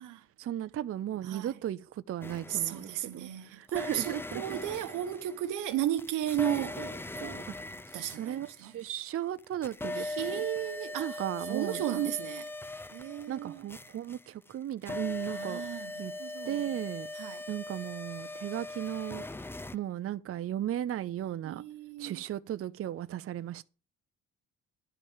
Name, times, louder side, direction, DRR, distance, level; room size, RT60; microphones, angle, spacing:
voice 1, 0.4-4.4 7.9-10.4 11.0-11.8 13.3-15.6 16.0-16.1 16.5-17.1 17.5-19.3 19.7-21.6 22.0-23.6, right 11 dB, 50° right, 0.6 m, -36 dB
voice 2, 1.2-1.6 2.5-7.5 7.9-8.7 10.0-11.2 11.5-12.5 12.9-13.7 15.2-16.8 17.1-17.4 21.4-22.2, right 12 dB, 90° right, 1.1 m, -35 dB
sound 1, 2.2-3.1 3.7-9.1 9.4-19.8, left 2 dB, 10° left, 0.5 m, -40 dB
10.5 x 5.4 x 7.5 m
cardioid pair, 90°, 30 cm